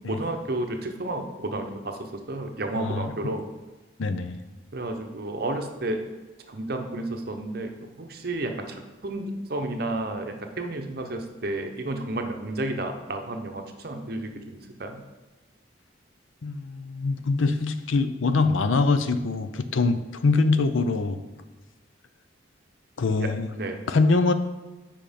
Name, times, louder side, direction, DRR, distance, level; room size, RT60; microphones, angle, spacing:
voice 1, 0.1-3.5 4.7-6.1 6.5-15.0 23.2-23.3 23.6-23.8, right 2 dB, 50° right, 4 dB, 0.8 m, -32 dB
voice 2, 2.7-3.3 4.0-4.4 16.4-21.2 23.0-23.5 23.9-24.3, left 3 dB, 85° left, 10 dB, 0.6 m, -24 dB
7.6 x 5.2 x 5.1 m, 1.2 s
head